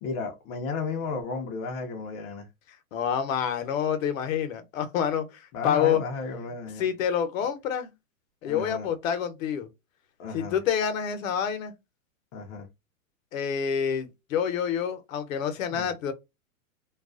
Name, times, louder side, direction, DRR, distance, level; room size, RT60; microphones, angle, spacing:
voice 1, 0.0-2.5 5.5-6.8 8.5-8.9 10.2-10.6 12.3-12.7 15.7-15.9, left 4 dB, 35° left, 0.6 m, -33 dB
voice 2, 2.9-6.0 6.8-7.9 8.4-9.7 10.3-11.7 13.3-16.1, left 8 dB, 70° left, 0.9 m, -27 dB
2.4 x 2.3 x 2.3 m
hypercardioid pair, 125°, 42 cm